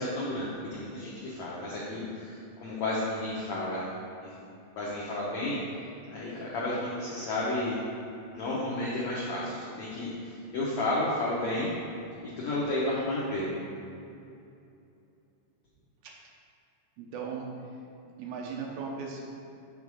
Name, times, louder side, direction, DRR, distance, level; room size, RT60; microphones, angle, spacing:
voice 1, 0.0-3.8 4.2-4.3 4.8-5.6 6.1-7.8 8.3-10.1 10.5-11.7 12.4-13.5, left 1 dB, 80° left, -6 dB, 1.6 m, -32 dB
voice 2, 17.0-17.7 18.2-19.2, right 5 dB, 80° right, -1 dB, 2.6 m, -37 dB
7.4 x 3.5 x 6.1 m, 2.6 s
omnidirectional pair, 4.5 m